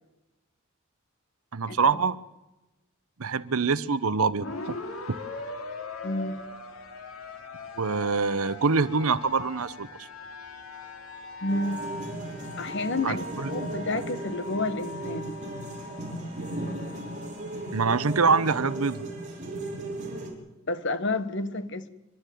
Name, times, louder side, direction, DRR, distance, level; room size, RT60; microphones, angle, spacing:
voice 1, 1.5-2.2 3.2-4.8 7.8-9.9 13.0-13.5 17.7-19.0, right 4 dB, 85° right, 0.9 m, -25 dB
sound 1, 4.4-18.7, left 3 dB, 80° left, 2.7 m, -41 dB
voice 2, 6.0-6.4 11.4-11.9 12.6-15.4 20.7-21.9, left 2 dB, 55° left, 1.3 m, -30 dB
sound 2, 11.5-20.3, right 2 dB, 35° right, 5.9 m, -36 dB
30.0 x 12.0 x 9.3 m
head